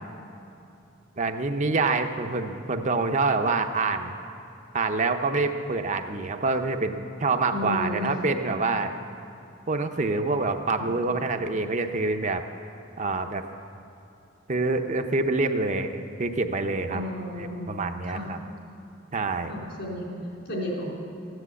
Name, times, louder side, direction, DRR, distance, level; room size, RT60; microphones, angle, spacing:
voice 1, 1.2-4.2 4.7-9.0 9.7-12.4 13.0-13.4 14.5-17.0 17.4-18.4 19.1-19.5, right 3 dB, 40° right, 6 dB, 0.7 m, -26 dB
voice 2, 7.5-8.1 10.8-10.9 16.9-17.7 18.0-18.3 19.5-20.9, left 1 dB, 60° left, -3 dB, 4.0 m, -33 dB
14.5 x 10.0 x 8.1 m, 2.8 s
head